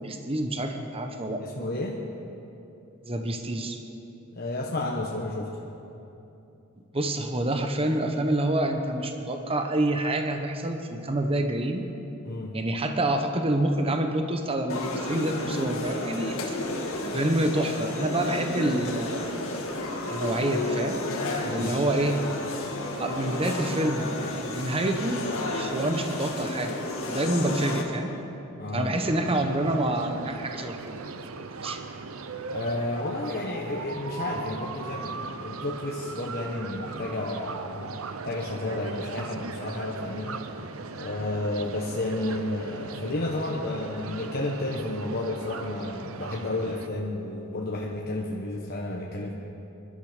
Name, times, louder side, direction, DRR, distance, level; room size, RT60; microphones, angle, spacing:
voice 1, 0.0-1.4 3.0-3.8 6.9-11.8 12.5-16.6 17.1-19.4 20.1-21.0 21.5-22.2 23.0-24.1 24.5-25.2 25.5-26.8 27.1-28.1 28.7-31.8, right 1 dB, 25° right, 5 dB, 1.1 m, -27 dB
voice 2, 1.4-2.0 4.3-5.5 12.2-12.6 21.4-21.7 28.6-29.0 32.5-38.0 38.2-40.4 41.0-49.3, left 2 dB, 45° left, -2 dB, 1.2 m, -31 dB
sound 1, 14.7-27.8, left 2 dB, 70° left, 2.0 m, -32 dB
sound 2, 29.0-46.9, right 4 dB, 70° right, 0.7 m, -38 dB
23.0 x 12.0 x 5.1 m, 2.9 s
head